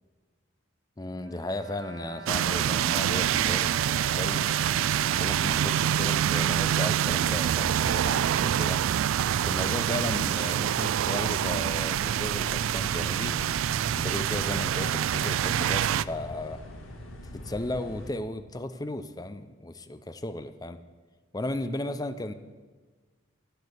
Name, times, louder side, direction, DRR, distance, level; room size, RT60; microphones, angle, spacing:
voice 1, 1.0-4.7 5.2-8.8 9.4-13.4 13.9-16.6 17.3-20.8 21.3-22.3, left 2 dB, 20° left, 10 dB, 0.5 m, -35 dB
Bowed string instrument, 1.0-7.2 7.9-8.0 8.3-8.5, right 2 dB, 55° right, 0.9 m, -43 dB
sound 1, 2.3-16.0, right 10 dB, 75° right, 0.3 m, -26 dB
sound 2, 11.1-18.1, left 1 dB, 85° left, 1.5 m, -43 dB
12.0 x 8.9 x 6.6 m, 1.4 s
head